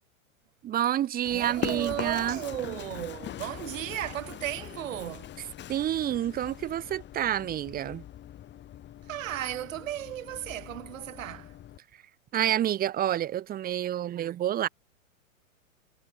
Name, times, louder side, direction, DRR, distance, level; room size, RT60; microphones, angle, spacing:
voice 1, 0.6-2.4 5.7-8.0 12.3-14.7, right 11 dB, 20° right, 1.5 m, -28 dB
Run, 1.3-11.8, left 12 dB, 25° left, 6.2 m, -42 dB
voice 2, 1.3-5.3 9.0-11.6, right 13 dB, 65° right, 5.8 m, -35 dB
hypercardioid pair, 125°, 42 cm